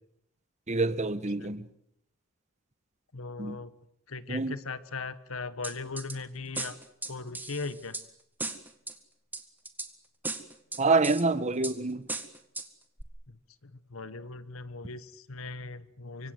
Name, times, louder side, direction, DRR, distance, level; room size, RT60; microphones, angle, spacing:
voice 1, 0.7-1.6 3.4-3.6 4.3-4.5 10.8-12.1, right 3 dB, 35° right, 1.2 m, -27 dB
voice 2, 3.1-3.7 4.1-6.8 7.1-8.0 13.3-16.3, left 3 dB, 90° left, 1.4 m, -39 dB
sound 1, 5.6-6.2 6.5-8.0 8.4-8.9 9.3-9.9 10.2-11.2 11.6-11.8 12.1-12.7 13.0-13.1, right 2 dB, 10° right, 1.8 m, -36 dB
25.0 x 25.0 x 7.9 m
head